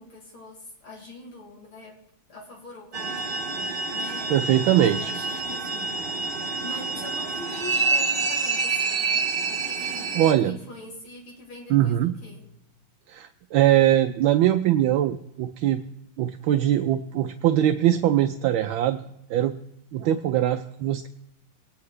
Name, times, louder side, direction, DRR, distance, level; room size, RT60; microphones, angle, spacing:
voice 1, 0.0-2.0 2.3-3.3 3.9-6.0 6.2-12.5, left 2 dB, 85° left, -3 dB, 3.9 m, -43 dB
sound 1, 2.9-10.3, right 4 dB, 50° right, 0.6 m, -27 dB
voice 2, 4.3-5.1 10.1-10.6 11.7-12.2 13.1-15.8 16.2-19.0 19.3-19.6 19.9-21.1, right 12 dB, 75° right, 7 dB, 1.4 m, -22 dB
22.0 x 9.5 x 3.2 m, 0.82 s
omnidirectional pair, 2.3 m